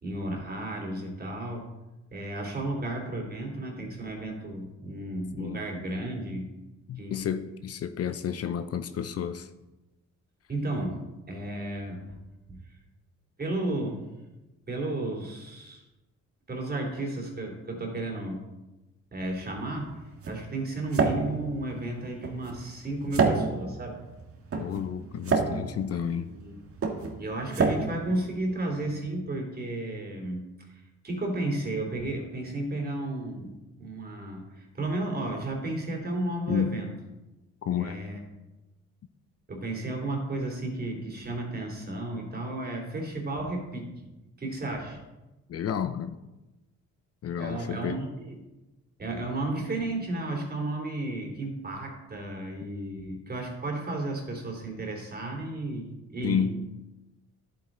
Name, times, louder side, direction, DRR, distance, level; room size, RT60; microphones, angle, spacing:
voice 1, 0.0-1.7 2.1-6.5 7.0-7.2 10.5-12.2 12.5-12.8 13.4-14.0 14.7-15.8 16.5-18.4 19.1-20.0 20.3-24.0 26.1-26.5 27.2-36.9 37.8-38.2 39.5-43.9 44.4-45.0 47.4-48.4 49.0-56.5, right 2 dB, 30° right, 2.9 m, -33 dB
voice 2, 6.9-9.5 24.5-26.3 36.5-36.9 37.6-38.0 45.5-46.2 47.2-48.0 56.2-56.7, left 8 dB, 55° left, 0.6 m, -31 dB
sound 1, 19.3-29.1, right 4 dB, 50° right, 1.5 m, -30 dB
10.5 x 8.6 x 3.8 m
cardioid pair, 90°, 30 cm